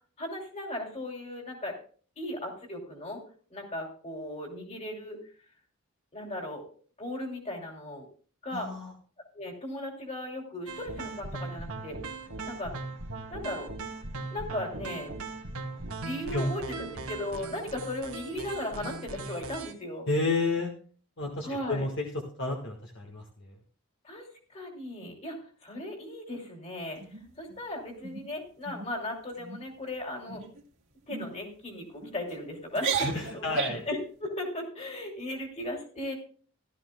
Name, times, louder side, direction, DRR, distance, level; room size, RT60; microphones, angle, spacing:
voice 1, 0.2-1.8 2.2-3.2 3.5-5.2 6.1-6.6 7.0-8.1 8.4-8.7 9.3-12.0 12.5-12.7 13.3-13.7 14.3-15.1 16.0-20.1 21.4-21.9 24.0-24.3 24.5-27.0 27.4-30.4 31.1-33.1 33.3-36.1, left 1 dB, 30° left, 1 dB, 2.9 m, -37 dB
voice 2, 8.5-8.9 16.3-16.5 20.1-20.7 21.2-22.1 22.4-23.5 32.9-33.8, left 2 dB, 55° left, 0 dB, 1.6 m, -31 dB
sound 1, 10.7-19.7, right 3 dB, 85° right, 1.7 m, -39 dB
sound 2, 27.0-27.6 28.0-28.3 28.6-28.9 29.3-29.6 30.3-30.6 31.1-31.3 32.0-32.4 32.7-33.9, right 5 dB, 60° right, 2.1 m, -34 dB
15.5 x 13.0 x 2.2 m, 0.42 s
head